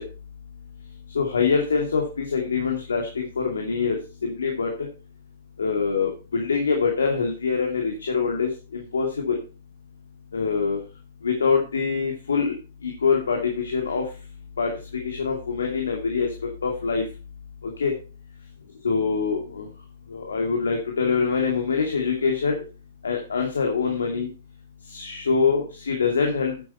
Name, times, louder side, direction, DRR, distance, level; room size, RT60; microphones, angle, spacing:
voice 1, 1.1-4.9 5.6-9.4 10.3-10.8 11.2-12.6 12.8-14.1 14.6-16.3 16.6-17.0 17.6-17.9 18.8-19.7 20.1-22.5 23.0-24.3 24.9-26.6, left 5 dB, 75° left, 2 dB, 2.4 m, -24 dB
10.0 x 8.8 x 4.3 m, 0.34 s
hypercardioid pair, 120°, 0 cm